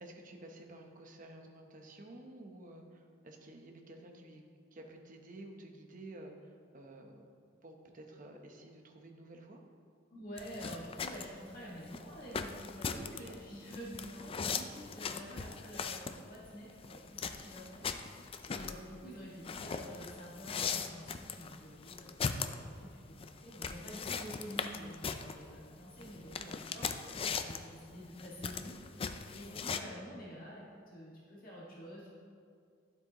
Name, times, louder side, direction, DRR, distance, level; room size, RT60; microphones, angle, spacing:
voice 1, 0.0-4.4 4.7-7.3 7.6-9.6 12.8-13.4 26.0-26.6 26.9-27.0, right 1 dB, 45° right, 3 dB, 0.9 m, -52 dB
voice 2, 10.1-22.1 22.4-32.1, equal, 50° left, -6 dB, 1.8 m, -48 dB
sound 1, 10.4-29.8, left 5 dB, 30° left, 0.4 m, -40 dB
12.0 x 7.8 x 3.0 m, 2.3 s
head